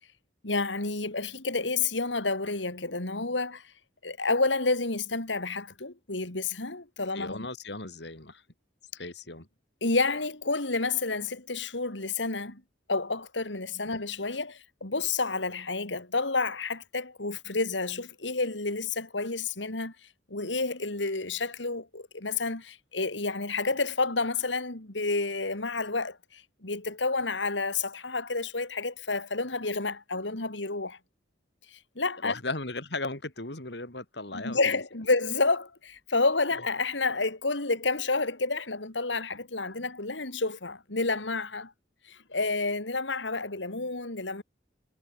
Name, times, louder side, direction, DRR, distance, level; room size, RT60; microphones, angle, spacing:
voice 1, 0.4-3.6 4.0-7.5 9.8-12.6 12.9-19.9 20.3-31.0 31.7-32.3 34.3-41.7 42.1-44.4, left 3 dB, 90° left, 3.3 m, -30 dB
voice 2, 7.1-8.4 9.0-9.5 32.2-34.6, left 2 dB, 65° left, 4.3 m, -36 dB
head